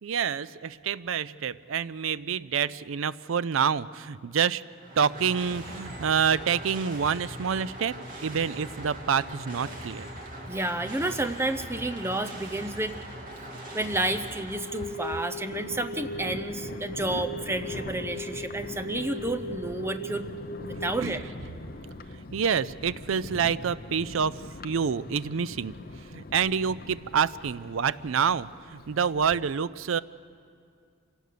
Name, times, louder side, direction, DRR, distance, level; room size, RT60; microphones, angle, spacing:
voice 1, 0.0-4.6 5.0-7.9 8.2-10.1 20.7-21.2 22.3-24.3 24.6-25.7 26.1-30.0, right 7 dB, 75° right, 18 dB, 0.4 m, -27 dB
sound 1, 4.6-15.5, right 1 dB, 40° right, 2.6 m, -41 dB
voice 2, 10.5-12.9 13.7-20.3 20.8-21.2, right 2 dB, 10° right, 9 dB, 0.7 m, -30 dB
sound 2, 13.9-20.9, equal, 5° left, 5.8 m, -39 dB
Thunder, 14.6-29.4, left 2 dB, 45° left, 0.8 m, -42 dB
26.0 x 17.5 x 6.8 m, 2.2 s
head